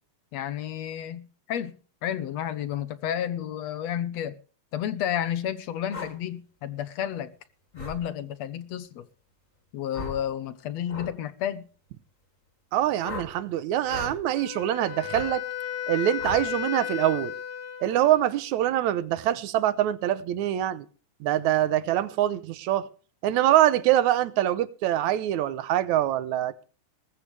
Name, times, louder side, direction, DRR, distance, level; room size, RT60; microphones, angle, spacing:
voice 1, 0.3-1.8 2.0-4.4 4.7-7.3 7.7-9.1 9.7-11.6, left 10 dB, 70° left, 2.0 m, -31 dB
sound 1, 5.9-6.1 7.8-8.0 9.9-10.2 10.9-11.1 13.0-13.3 13.8-14.2 15.1-15.3 16.2-16.5, left 3 dB, 25° left, 3.9 m, -36 dB
voice 2, 12.7-15.4 15.9-17.3 17.8-20.9 21.2-22.9 23.2-26.6, right 12 dB, 75° right, 2.2 m, -24 dB
Wind instrument woodwind instrument, 14.3-18.4, left 10 dB, 55° left, 2.0 m, -34 dB
19.5 x 15.0 x 3.3 m
omnidirectional pair, 3.4 m